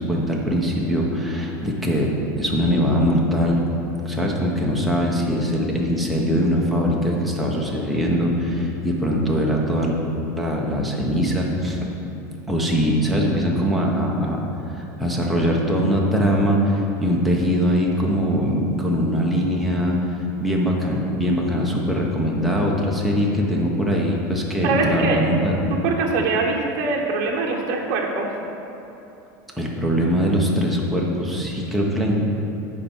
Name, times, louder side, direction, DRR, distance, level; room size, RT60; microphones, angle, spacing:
voice 1, 0.0-2.1 2.4-3.6 4.0-10.0 10.4-11.9 12.5-14.4 14.8-20.0 20.4-25.5 29.6-32.2, equal, ahead, -3 dB, 0.9 m, -22 dB
voice 2, 24.6-25.2 25.7-28.3, right 3 dB, 45° right, -1 dB, 1.1 m, -23 dB
9.8 x 4.2 x 7.3 m, 2.9 s
supercardioid pair, 165°, 10 cm